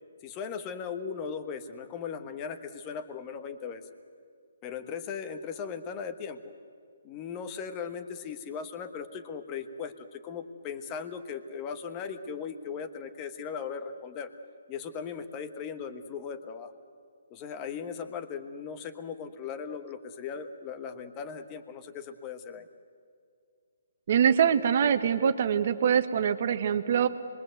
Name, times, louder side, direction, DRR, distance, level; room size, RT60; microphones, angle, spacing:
voice 1, 0.2-3.8 4.6-6.5 7.0-14.3 14.7-16.7 17.3-22.7, left 6 dB, 20° left, 9 dB, 1.3 m, -38 dB
voice 2, 24.1-27.1, right 8 dB, 45° right, 9 dB, 1.2 m, -24 dB
26.5 x 22.5 x 7.9 m, 2.3 s
hypercardioid pair, 160°, 0 cm